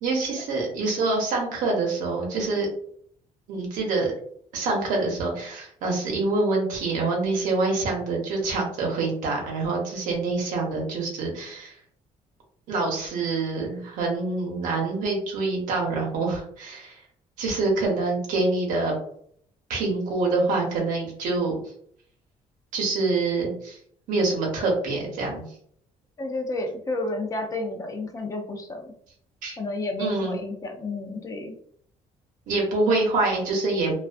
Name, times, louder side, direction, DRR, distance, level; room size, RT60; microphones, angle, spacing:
voice 1, 0.0-2.7 3.5-4.1 4.5-11.8 12.7-17.0 17.4-18.9 19.7-21.5 22.7-23.8 24.1-25.4 29.4-29.6 30.0-30.3 32.5-33.9, right 3 dB, 85° right, -1 dB, 0.8 m, -26 dB
voice 2, 26.2-28.9 29.6-31.5, left 2 dB, 25° left, 3 dB, 0.4 m, -31 dB
2.3 x 2.3 x 2.4 m, 0.63 s
cardioid pair, 160°, 13 cm